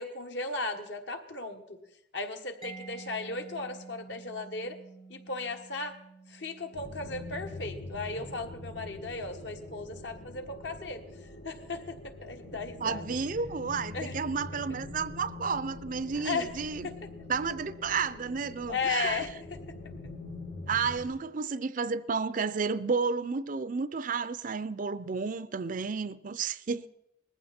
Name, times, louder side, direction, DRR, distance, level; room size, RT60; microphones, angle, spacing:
voice 1, 0.0-1.8 2.1-4.8 5.1-6.0 6.3-11.0 11.4-13.0 13.9-14.6 16.2-16.5 16.8-16.9 18.7-19.6 20.0-20.1, left 3 dB, 65° left, 1.6 m, -36 dB
Mallet percussion, 2.6-10.2, right 4 dB, 25° left, 0.9 m, -51 dB
sound 1, 6.7-21.0, left 2 dB, 85° left, 2.8 m, -44 dB
voice 2, 12.8-16.9 17.3-19.3 20.7-26.9, right 5 dB, 45° right, 0.5 m, -32 dB
19.5 x 15.0 x 4.3 m
head